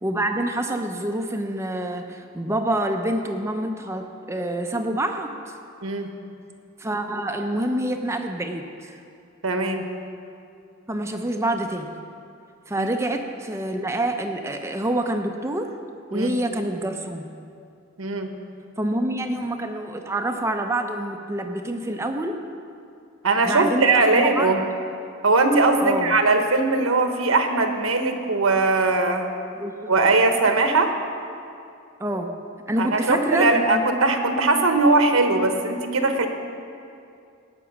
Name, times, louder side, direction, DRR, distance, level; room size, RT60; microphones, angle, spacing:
voice 1, 0.0-5.6 6.8-9.0 10.9-11.9 12.7-15.7 16.1-17.3 18.8-22.4 23.4-24.5 25.8-26.1 29.6-29.9 32.0-32.3 32.7-33.8, right 1 dB, 15° right, 5 dB, 0.5 m, -27 dB
voice 2, 9.4-9.9 12.8-12.9 16.1-16.3 18.0-18.3 23.2-24.6 25.2-29.3 29.9-30.9 32.8-36.3, right 3 dB, 80° right, 6 dB, 1.1 m, -20 dB
18.0 x 6.0 x 6.0 m, 2.5 s
head